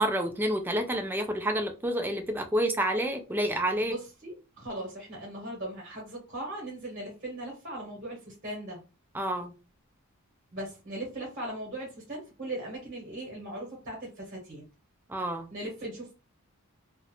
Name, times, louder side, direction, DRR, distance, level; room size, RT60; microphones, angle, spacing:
voice 1, 0.0-3.9 9.1-9.5 15.1-15.5, right 1 dB, 10° right, 0.3 m, -29 dB
voice 2, 3.8-8.8 10.5-14.6 15.5-16.1, right 1 dB, 40° right, 0.9 m, -39 dB
2.4 x 2.0 x 2.9 m
head